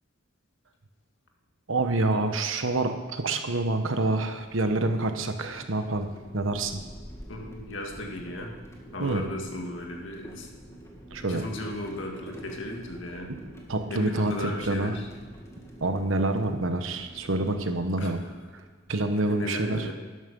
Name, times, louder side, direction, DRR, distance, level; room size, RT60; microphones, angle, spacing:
voice 1, 1.7-6.8 9.0-9.2 11.1-11.5 13.7-15.0 15.8-18.2 18.9-19.9, right 2 dB, 80° right, 7 dB, 1.2 m, -27 dB
sound 1, 3.9-18.9, equal, 15° left, 1.8 m, -47 dB
voice 2, 7.3-8.6 8.9-10.5 11.2-13.4 13.9-15.1 18.0-18.1 19.3-19.9, left 1 dB, 70° left, 1 dB, 2.0 m, -36 dB
12.0 x 11.5 x 5.4 m, 1.4 s
head